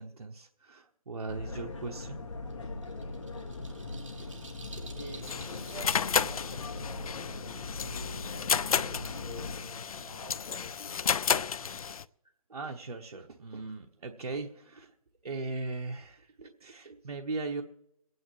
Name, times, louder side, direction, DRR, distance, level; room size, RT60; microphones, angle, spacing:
voice 1, 0.0-2.2 4.2-4.4 12.5-14.9 15.2-17.6, right 3 dB, 85° right, 3 dB, 1.0 m, -39 dB
sound 1, 1.3-9.6, left 2 dB, 55° left, 1.9 m, -40 dB
sound 2, 2.5-8.3, right 3 dB, 60° right, 1.8 m, -53 dB
voice 2, 4.9-11.7, right 1 dB, 15° right, -10 dB, 5.1 m, -48 dB
sound 3, 5.2-12.0, left 7 dB, 75° left, 0.4 m, -32 dB
23.5 x 9.4 x 3.1 m, 0.80 s
hypercardioid pair, 170°, 19 cm